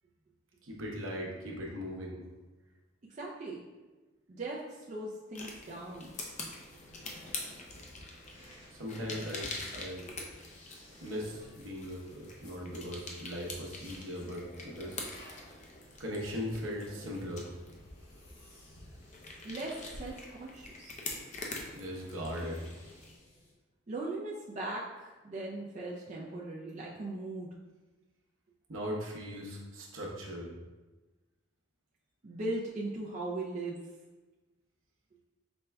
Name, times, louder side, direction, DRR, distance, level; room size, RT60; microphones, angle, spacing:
voice 1, 0.6-2.2 8.7-10.1 11.0-15.1 16.0-17.5 21.7-22.7 28.7-30.5, equal, 70° right, -2 dB, 0.8 m, -39 dB
voice 2, 3.2-3.6 4.3-6.1 19.4-20.9 23.9-27.5 32.2-33.8, right 2 dB, 35° right, -4 dB, 0.4 m, -39 dB
sound 1, 5.3-23.2, left 3 dB, 35° left, 0.5 m, -45 dB
sound 2, 5.5-23.5, left 1 dB, 55° left, 1.5 m, -56 dB
5.1 x 2.2 x 3.3 m, 1.2 s
head